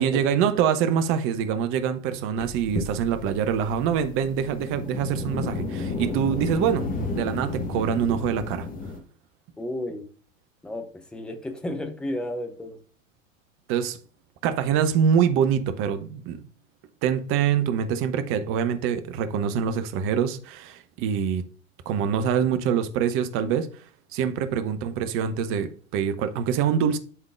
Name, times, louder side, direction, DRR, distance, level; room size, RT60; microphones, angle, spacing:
voice 1, 0.0-8.7 13.7-14.0 14.4-16.4 17.0-21.4 21.9-23.8 24.1-27.0, right 8 dB, 35° right, 0.7 m, -25 dB
sound 1, 2.4-9.0, left 3 dB, 20° left, 1.2 m, -32 dB
voice 2, 9.6-10.1 10.6-12.8 24.5-24.6, left 1 dB, 5° left, 0.3 m, -33 dB
11.0 x 3.7 x 2.4 m
figure-of-eight pair, 85°, 40 cm